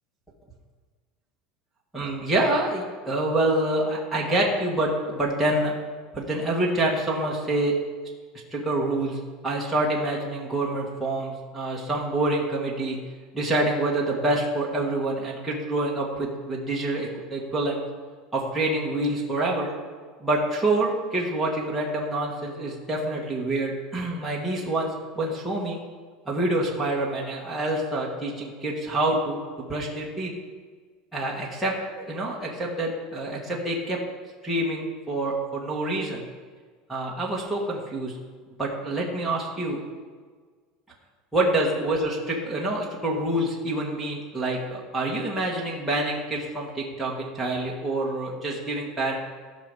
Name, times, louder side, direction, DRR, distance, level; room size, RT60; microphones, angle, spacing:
voice 1, 1.9-5.7 6.1-7.7 8.5-13.0 13.3-17.8 18.3-19.7 20.2-24.9 25.1-25.8 26.2-30.3 31.1-34.0 34.4-36.2 36.9-38.2 38.6-39.8 41.3-49.2, right 1 dB, 5° right, -5 dB, 1.5 m, -27 dB
15.5 x 6.0 x 5.3 m, 1.5 s
cardioid pair, 175°, 0 cm